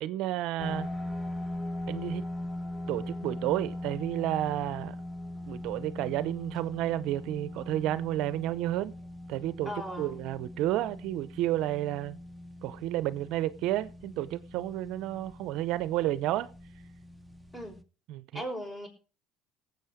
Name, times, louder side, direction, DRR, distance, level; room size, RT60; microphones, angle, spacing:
voice 1, 0.0-0.9 1.9-2.2 2.9-5.0 5.5-8.9 9.3-9.7 10.0-12.2 12.6-16.5 18.1-18.4, right 14 dB, 70° right, 0.7 m, -31 dB
sound 1, 0.6-17.8, left 1 dB, ahead, 1.1 m, -40 dB
voice 2, 9.7-10.1 17.5-17.8 18.3-18.9, equal, 15° left, 5.4 m, -37 dB
18.5 x 7.9 x 5.0 m
supercardioid pair, 85°, 0 cm